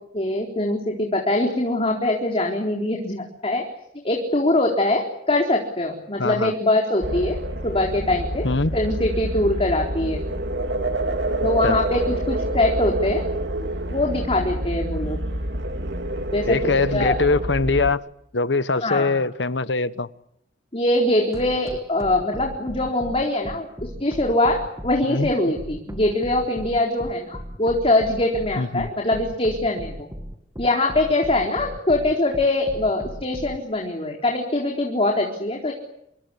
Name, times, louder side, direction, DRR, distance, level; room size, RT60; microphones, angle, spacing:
voice 1, 0.1-3.6 4.0-10.4 11.4-13.2 13.9-15.2 16.3-17.2 18.8-19.2 20.7-30.1 30.6-35.7, left 2 dB, 35° left, 4.1 m, -23 dB
voice 2, 6.2-6.5 8.4-8.7 11.6-11.8 16.4-18.0 18.3-20.1 25.1-25.5 28.6-28.9, left 3 dB, 75° left, 1.2 m, -22 dB
sound 1, 7.0-17.9, right 1 dB, 70° right, 2.8 m, -27 dB
sound 2, 21.3-33.6, equal, 20° right, 2.3 m, -36 dB
28.0 x 24.0 x 8.5 m
head